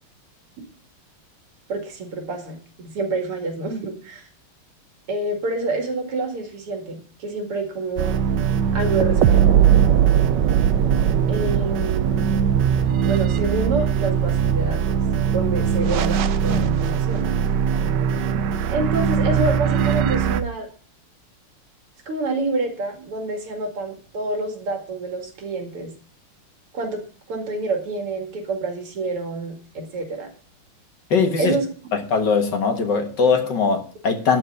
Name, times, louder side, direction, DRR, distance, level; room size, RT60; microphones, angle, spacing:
voice 1, 1.7-4.3 5.1-8.2 8.7-9.5 11.3-12.4 13.0-15.0 15.3-17.3 18.7-20.7 22.1-25.9 26.7-27.0 27.3-30.3 31.4-31.7, right 2 dB, 90° right, 3.1 m, -27 dB
sound 1, 8.0-20.4, right 8 dB, 70° right, 1.1 m, -20 dB
voice 2, 31.1-31.6 31.9-34.4, left 5 dB, 55° left, 2.0 m, -20 dB
12.0 x 4.6 x 7.9 m
omnidirectional pair, 2.4 m